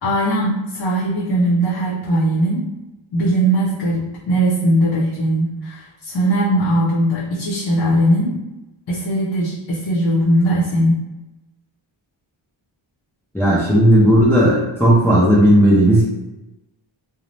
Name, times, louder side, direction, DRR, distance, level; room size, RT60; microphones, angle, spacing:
voice 1, 0.0-2.6 3.1-8.4 8.9-11.0, right 1 dB, 55° left, -7 dB, 0.6 m, -19 dB
voice 2, 13.3-16.0, equal, 5° left, -6 dB, 0.6 m, -13 dB
2.6 x 2.1 x 3.1 m, 1.0 s
wide cardioid pair, 155°, 48 cm